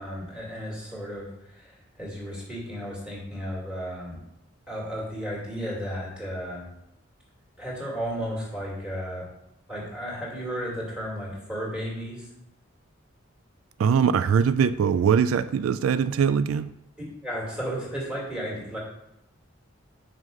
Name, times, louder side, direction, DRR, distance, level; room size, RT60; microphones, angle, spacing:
voice 1, 0.0-4.2 4.7-6.7 7.6-9.3 9.7-12.3 17.2-18.8, equal, 5° right, -5 dB, 2.5 m, -34 dB
voice 2, 13.8-16.7, right 7 dB, 85° right, 14 dB, 0.3 m, -22 dB
6.3 x 5.1 x 5.4 m, 0.86 s
head